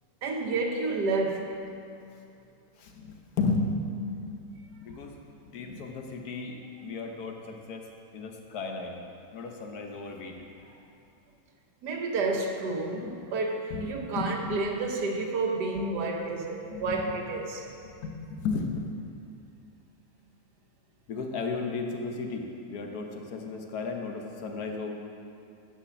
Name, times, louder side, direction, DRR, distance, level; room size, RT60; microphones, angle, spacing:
voice 1, 0.2-1.6 11.8-17.7, right 3 dB, 80° right, 2 dB, 1.5 m, -30 dB
voice 2, 2.8-3.7 4.2-4.4 4.7-5.1 5.4-7.8 8.1-9.0 9.3-10.5 13.7-14.6 16.7-17.2 17.8-19.1 21.1-24.9, left 4 dB, 65° left, 2 dB, 1.3 m, -34 dB
9.9 x 5.0 x 6.9 m, 2.5 s
omnidirectional pair, 1.8 m